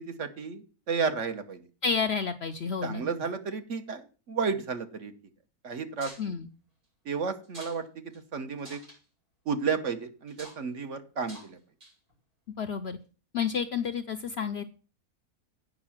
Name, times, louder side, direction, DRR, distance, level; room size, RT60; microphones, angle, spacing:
voice 1, 0.0-1.6 2.8-5.1 5.6-6.4 7.0-7.8 8.3-8.8 9.5-11.6, right 5 dB, 55° right, 8 dB, 1.3 m, -32 dB
voice 2, 1.8-3.0 6.2-6.5 12.6-13.0 13.3-14.6, left 6 dB, 60° left, 9 dB, 0.7 m, -30 dB
sound 1, 6.0-6.3 7.4-7.8 8.1-8.2 8.6-9.0 10.3-10.6 11.3-11.5 11.8-12.1, right 1 dB, 85° right, 7.4 m, -47 dB
8.9 x 5.5 x 7.3 m, 0.36 s
omnidirectional pair, 1.6 m